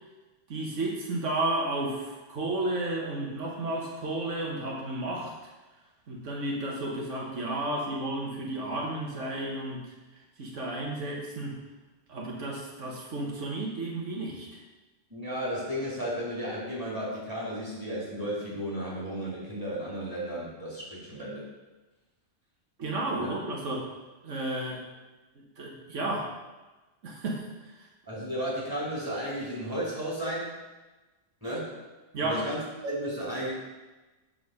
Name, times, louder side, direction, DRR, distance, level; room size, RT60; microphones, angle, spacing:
voice 1, 0.5-5.4 6.1-9.9 10.4-11.6 12.1-14.5 22.8-23.9 24.2-24.9 25.6-26.3 27.0-27.5 32.1-32.4, right 2 dB, 85° right, -2 dB, 1.5 m, -32 dB
voice 2, 15.1-21.4 23.2-23.4 28.1-30.5 31.4-31.7 32.2-33.5, equal, 15° right, -7 dB, 2.8 m, -34 dB
7.7 x 3.8 x 6.3 m, 1.1 s
omnidirectional pair, 1.3 m